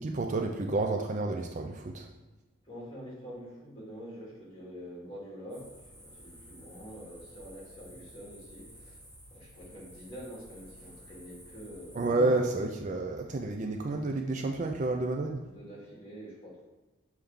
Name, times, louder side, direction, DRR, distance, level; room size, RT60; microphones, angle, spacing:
voice 1, 0.0-2.1 12.0-15.4, right 2 dB, 35° right, 3 dB, 0.4 m, -30 dB
voice 2, 2.6-9.0 9.3-12.5 15.4-16.7, equal, 25° left, -5 dB, 2.3 m, -46 dB
sound 1, 5.5-12.1, equal, 5° left, 2.1 m, -52 dB
6.9 x 4.6 x 3.7 m, 1.1 s
head